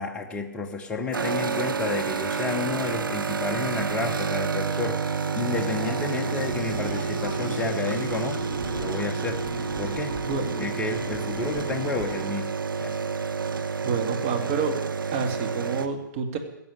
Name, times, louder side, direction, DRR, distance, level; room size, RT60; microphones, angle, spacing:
voice 1, 0.0-8.4 8.7-9.4 9.8-10.2 10.6-12.5 12.8-13.0, left 4 dB, 10° left, 2 dB, 1.1 m, -31 dB
sound 1, 1.1-15.9, right 5 dB, 85° right, 1.2 m, -29 dB
sound 2, 5.6-12.3, right 2 dB, 20° right, 3.9 m, -37 dB
voice 2, 10.2-10.6 13.8-14.8 15.1-16.4, right 5 dB, 35° right, 5 dB, 2.2 m, -28 dB
16.5 x 7.0 x 9.6 m, 0.88 s
hypercardioid pair, 140°, 11 cm